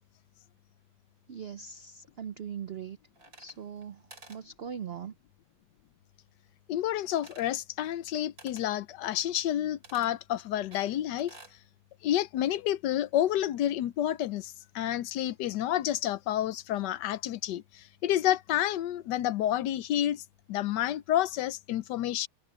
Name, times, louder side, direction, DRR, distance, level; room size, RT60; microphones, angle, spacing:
voice 1, 1.3-3.0 3.4-4.0 4.3-5.1, right 8 dB, 85° right, 0.5 m, -40 dB
sound 1, 3.2-3.9 4.1-4.4 7.2-7.6 8.4-8.7 9.8-10.1 10.7-11.6, right 2 dB, 55° right, 3.8 m, -52 dB
voice 2, 6.7-11.3 12.0-17.6 18.0-20.2 20.5-22.3, left 12 dB, 80° left, 1.3 m, -29 dB
omnidirectional pair, 1.8 m